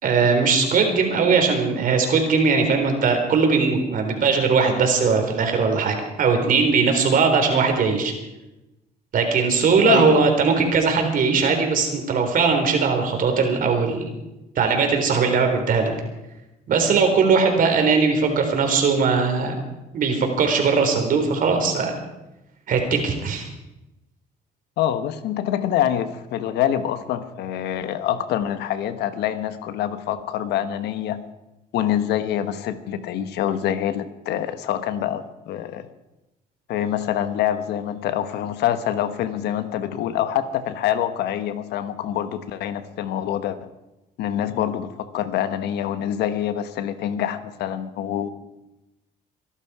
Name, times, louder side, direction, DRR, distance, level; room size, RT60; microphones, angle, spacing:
voice 1, 0.0-8.1 9.1-14.1 14.6-15.9 16.7-19.6 19.9-22.0 22.7-23.5, right 5 dB, 55° right, 4 dB, 3.7 m, -20 dB
voice 2, 24.8-31.2 31.7-35.9 36.7-43.6 44.2-48.3, left 10 dB, 80° left, 11 dB, 1.2 m, -25 dB
24.0 x 11.5 x 4.9 m, 0.98 s
cardioid pair, 110°, 17 cm